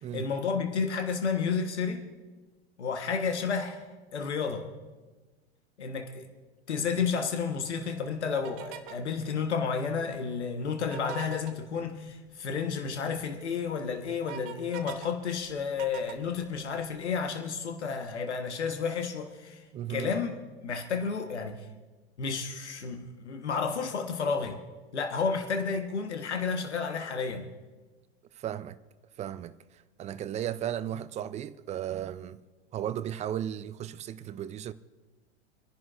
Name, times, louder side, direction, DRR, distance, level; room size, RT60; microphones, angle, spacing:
voice 1, 0.1-2.1 2.8-3.8 4.1-4.7 5.8-6.3 6.7-19.6 19.9-20.3 20.6-21.7 22.2-24.6 24.9-27.5, left 5 dB, 80° left, 1.3 m, -31 dB
sound 1, 8.4-9.1 10.8-11.5 13.2-13.3 13.7-15.1 15.4-17.0, right 13 dB, 50° right, 1.1 m, -43 dB
voice 2, 19.7-20.1 28.4-28.8 29.2-29.5 30.0-32.4 32.7-34.7, right 10 dB, 20° right, 0.4 m, -35 dB
27.0 x 10.5 x 2.5 m
figure-of-eight pair, 90°, 34 cm